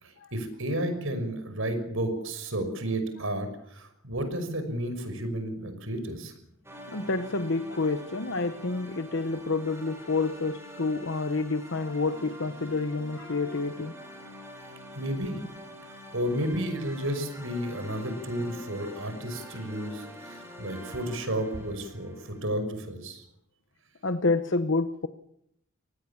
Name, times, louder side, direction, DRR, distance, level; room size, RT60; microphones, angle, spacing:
voice 1, 0.0-6.3 14.9-15.4 16.1-23.2, right 1 dB, 65° right, 8 dB, 5.9 m, -32 dB
sound 1, 6.6-22.4, equal, 10° right, 6.8 m, -45 dB
voice 2, 6.9-13.9 24.0-25.1, left 3 dB, 60° left, 10 dB, 1.0 m, -28 dB
25.5 x 19.5 x 7.2 m, 0.73 s
head